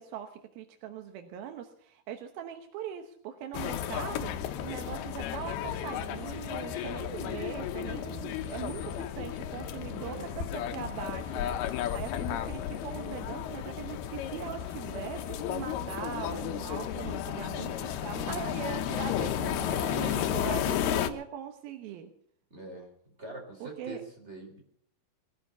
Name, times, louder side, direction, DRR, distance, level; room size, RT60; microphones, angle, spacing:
voice 1, 0.0-22.1 23.6-24.0, right 9 dB, 75° right, 6 dB, 2.9 m, -41 dB
sound 1, 3.5-21.1, left 10 dB, 85° left, 3.0 m, -33 dB
voice 2, 10.0-10.4 12.4-12.6 19.9-21.0 22.5-22.9 23.2-24.6, right 2 dB, 15° right, 2 dB, 4.0 m, -44 dB
20.5 x 12.5 x 5.5 m, 0.63 s
omnidirectional pair, 4.5 m